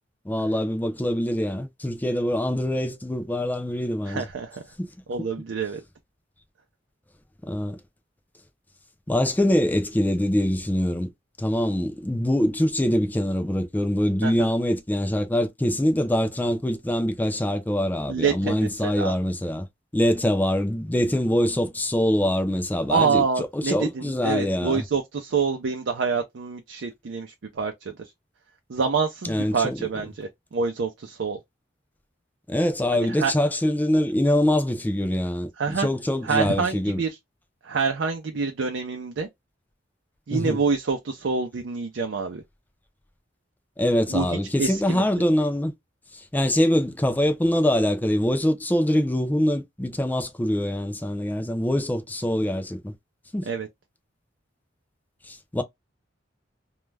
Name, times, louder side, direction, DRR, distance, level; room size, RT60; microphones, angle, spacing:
voice 1, 0.3-4.3 4.8-4.9 5.2-5.3 7.4-7.8 9.1-11.1 11.4-19.7 19.9-24.8 29.2-29.8 32.5-37.0 40.3-40.6 43.8-45.7 46.1-52.9 53.3-53.5 55.3-55.6, left 1 dB, 10° left, 0.4 m, -24 dB
voice 2, 4.1-4.6 5.1-5.8 14.2-14.5 18.1-19.2 22.9-28.1 28.7-31.4 32.9-33.3 35.6-35.9 36.2-37.2 37.6-39.3 40.3-42.4 44.1-44.3 44.6-45.1 53.5-53.7, right 5 dB, 75° right, 0.5 m, -27 dB
2.3 x 2.1 x 3.2 m
head